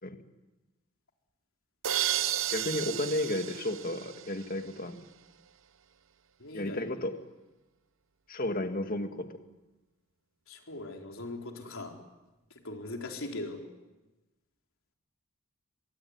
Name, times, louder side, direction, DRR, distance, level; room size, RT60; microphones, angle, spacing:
sound 1, 1.8-4.7, right 12 dB, 65° right, 0.9 m, -33 dB
voice 1, 2.5-5.0 6.5-7.2 8.3-9.3, left 1 dB, 45° left, 6 dB, 2.2 m, -32 dB
voice 2, 6.4-6.9 10.5-11.9 12.6-13.6, left 2 dB, 70° left, 2 dB, 4.2 m, -40 dB
24.0 x 23.5 x 9.6 m, 1.1 s
head